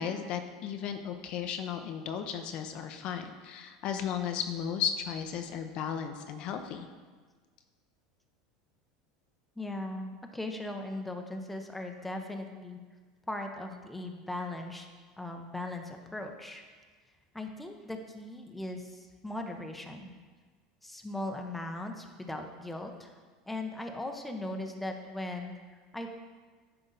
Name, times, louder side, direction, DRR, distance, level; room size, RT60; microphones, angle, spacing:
voice 1, 0.0-6.9, left 8 dB, 50° left, 6 dB, 0.6 m, -35 dB
voice 2, 9.6-12.8 13.3-14.9 15.2-16.6 17.3-20.1 20.8-23.1 23.5-26.1, left 1 dB, 5° left, 4 dB, 0.7 m, -39 dB
10.0 x 3.9 x 3.9 m, 1.4 s
supercardioid pair, 110°, 2 cm